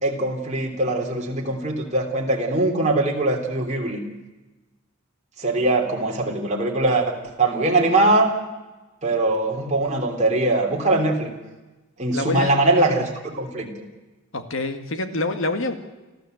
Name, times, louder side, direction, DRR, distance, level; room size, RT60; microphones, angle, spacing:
voice 1, 0.0-4.0 5.4-8.3 9.0-11.3 12.0-13.7, right 2 dB, 30° right, 0 dB, 3.2 m, -22 dB
voice 2, 12.1-12.6 14.3-15.7, left 2 dB, 60° left, 8 dB, 2.0 m, -26 dB
29.5 x 13.0 x 7.9 m, 1.1 s
head